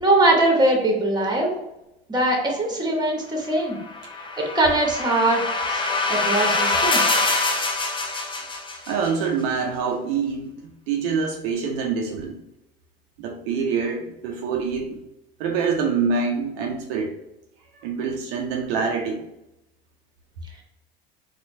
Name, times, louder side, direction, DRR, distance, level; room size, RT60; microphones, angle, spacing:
voice 1, 0.0-1.5 2.1-3.8 4.4-5.4 5.7-5.8 6.1-7.0, right 2 dB, 15° right, 0 dB, 1.2 m, -21 dB
sound 1, 3.8-9.1, left 3 dB, 15° left, 0.6 m, -24 dB
voice 2, 8.9-10.5 10.9-12.4 13.2-15.0 15.4-17.1 17.8-19.2, right 5 dB, 65° right, 1 dB, 0.6 m, -25 dB
4.2 x 2.4 x 2.6 m, 0.90 s
hypercardioid pair, 65°, 30 cm